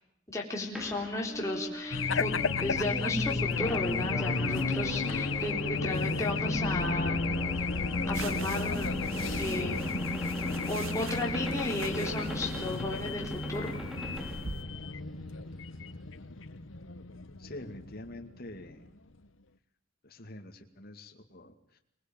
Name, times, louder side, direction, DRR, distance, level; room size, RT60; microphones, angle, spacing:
voice 1, 0.3-2.3 2.6-7.3 7.6-7.7 8.1-9.0 9.4-9.8 10.7-13.7, left 2 dB, 15° left, -2 dB, 3.9 m, -34 dB
sound 1, 0.8-15.5, equal, ahead, 3.6 m, -39 dB
Race car auto racing / Alarm, 1.9-18.9, left 4 dB, 70° left, 1.3 m, -33 dB
sound 2, 8.1-14.6, right 5 dB, 80° right, 1.4 m, -46 dB
voice 2, 17.4-18.9 20.0-21.8, left 1 dB, 50° left, 3 dB, 2.4 m, -46 dB
26.5 x 20.0 x 9.0 m, 0.79 s
head